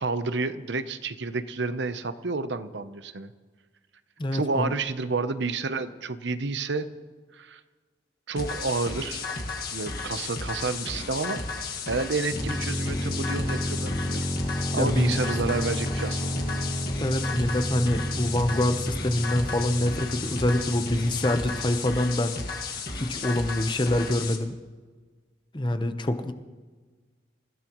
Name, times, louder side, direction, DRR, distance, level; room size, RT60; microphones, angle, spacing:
voice 1, 0.0-3.3 4.3-6.9 7.3-7.6 8.3-9.2 9.6-11.4 11.9-14.2 14.7-16.7, right 3 dB, 75° right, 11 dB, 0.8 m, -30 dB
voice 2, 4.2-4.7 14.8-15.2 17.0-22.6 22.9-24.5 25.5-26.3, left 1 dB, 25° left, 8 dB, 0.9 m, -26 dB
sound 1, 8.4-24.4, left 4 dB, 50° left, 1.8 m, -34 dB
sound 2, 12.3-21.9, equal, 5° left, 2.0 m, -31 dB
28.0 x 16.0 x 3.1 m, 1.4 s
head